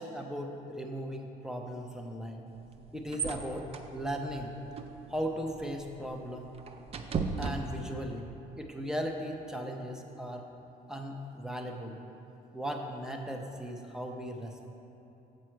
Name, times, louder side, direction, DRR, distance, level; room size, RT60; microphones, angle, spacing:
voice 1, 0.0-2.4 2.9-4.5 5.1-6.5 7.4-8.3 8.6-10.5 10.9-12.0 12.5-14.7, equal, 5° right, 2 dB, 0.7 m, -37 dB
sound 1, 2.5-8.2, right 4 dB, 35° right, 0.5 m, -39 dB
7.5 x 6.1 x 4.5 m, 2.9 s
cardioid pair, 110°, 17 cm